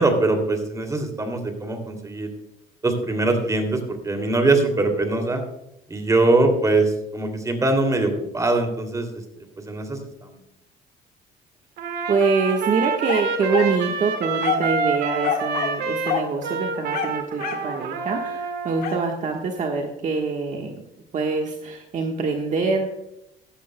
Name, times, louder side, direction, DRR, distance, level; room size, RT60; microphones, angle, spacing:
voice 1, 0.0-2.3 2.8-5.4 5.9-10.4, right 2 dB, 20° right, 4 dB, 2.7 m, -22 dB
Trumpet, 11.8-18.9, right 4 dB, 75° right, 1.9 m, -27 dB
voice 2, 12.1-20.7 21.1-22.9, right 4 dB, 45° right, 2 dB, 1.3 m, -25 dB
sound 1, 13.1-13.8 14.4-14.7 15.2-15.8 16.1-16.3 16.9-17.7 18.8-19.1, left 7 dB, 60° left, 1.7 m, -27 dB
15.5 x 12.5 x 2.2 m, 0.83 s
cardioid pair, 110°, 17 cm